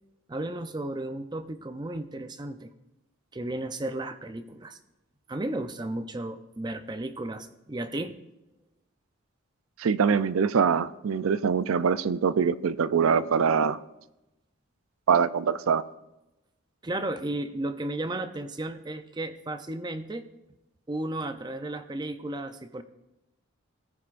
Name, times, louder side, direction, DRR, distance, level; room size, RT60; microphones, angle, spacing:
voice 1, 0.3-2.7 3.3-4.8 5.3-8.1 16.8-20.2 20.9-22.8, right 1 dB, 20° right, 9 dB, 0.5 m, -34 dB
voice 2, 9.8-13.8 15.1-15.8, right 6 dB, 85° right, 15 dB, 0.4 m, -24 dB
17.5 x 9.6 x 2.5 m, 0.96 s
head